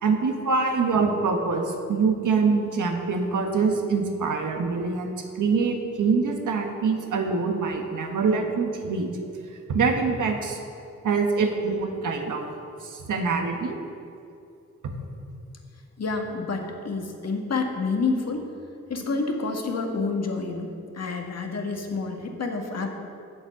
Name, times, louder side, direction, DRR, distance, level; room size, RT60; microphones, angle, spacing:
voice 1, 0.0-9.1 9.7-10.6 11.0-12.5 12.8-13.8 14.8-14.9, right 4 dB, 70° right, 3 dB, 1.5 m, -24 dB
voice 2, 16.0-18.4 18.9-20.7 20.9-23.0, left 4 dB, 50° left, 2 dB, 1.7 m, -28 dB
8.7 x 7.5 x 7.0 m, 2.5 s
cardioid pair, 60°, 32 cm